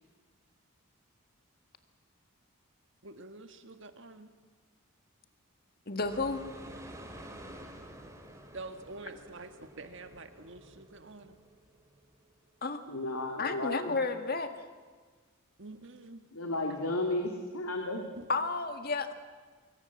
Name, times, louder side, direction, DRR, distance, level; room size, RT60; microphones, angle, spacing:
voice 1, 3.0-4.3 8.5-11.3 15.6-16.2 18.0-18.3, right 2 dB, 60° right, 8 dB, 1.7 m, -47 dB
voice 2, 5.9-6.4 12.6-12.8 13.4-14.5 18.3-19.1, left 3 dB, 45° left, 8 dB, 1.8 m, -31 dB
sound 1, 6.0-12.3, right 1 dB, 15° right, 2.4 m, -50 dB
voice 3, 12.9-13.9 16.3-18.0, left 2 dB, 90° left, 3 dB, 2.5 m, -33 dB
25.5 x 23.5 x 7.3 m, 1.5 s
head